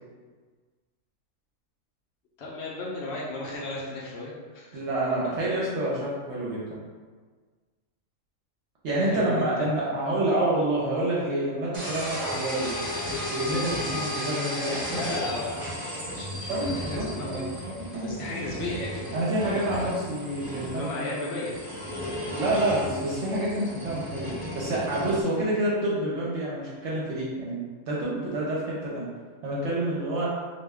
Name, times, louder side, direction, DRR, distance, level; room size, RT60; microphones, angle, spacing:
voice 1, 2.4-4.8 9.0-9.8 14.9-17.5 17.9-19.1 19.4-19.9 20.7-21.5 21.9-22.7, left 2 dB, 65° left, -5 dB, 0.7 m, -35 dB
voice 2, 4.7-6.8 8.8-12.8 13.2-15.0 16.5-17.4 17.8-18.8 19.1-21.1 22.2-29.1 29.4-30.3, right 1 dB, 65° right, -6 dB, 0.8 m, -28 dB
sound 1, 11.7-25.2, left 1 dB, 30° right, 0.7 m, -35 dB
2.4 x 2.2 x 3.3 m, 1.5 s
omnidirectional pair, 1.4 m